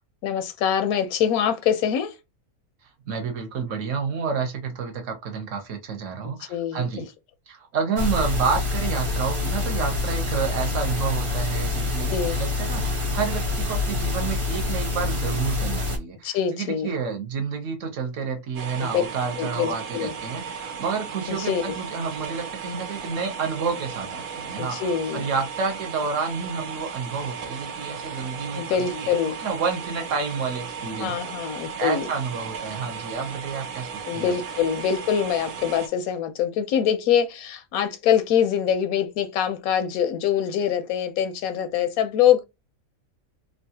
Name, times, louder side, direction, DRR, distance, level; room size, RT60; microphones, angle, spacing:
voice 1, 0.2-2.1 6.5-7.1 12.1-12.4 16.2-16.9 18.8-19.0 19.4-20.1 21.3-21.8 24.6-25.3 28.6-29.4 31.0-32.1 34.1-42.4, left 9 dB, 85° left, 1.1 m, -24 dB
voice 2, 3.1-7.1 7.5-31.2 31.4-34.3, right 5 dB, 65° right, 1.1 m, -29 dB
sound 1, 8.0-16.0, left 3 dB, 30° right, 0.7 m, -26 dB
sound 2, 18.6-35.9, right 6 dB, 90° right, 1.1 m, -36 dB
3.0 x 2.3 x 2.8 m
omnidirectional pair, 1.5 m